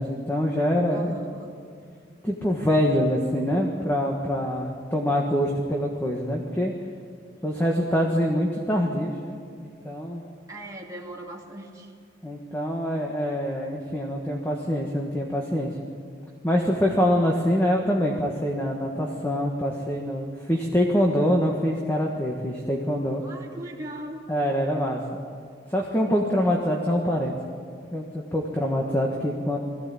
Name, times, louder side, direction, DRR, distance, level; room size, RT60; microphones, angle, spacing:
voice 1, 0.0-1.2 2.2-6.7 7.4-10.2 12.2-15.7 16.4-23.2 24.3-25.0 25.7-27.3 27.9-29.6, equal, 10° left, 0 dB, 1.6 m, -25 dB
voice 2, 0.9-1.5 7.4-8.0 10.5-11.9 23.2-24.3, right 1 dB, 20° right, -2 dB, 2.5 m, -40 dB
21.5 x 16.0 x 8.6 m, 2.2 s
head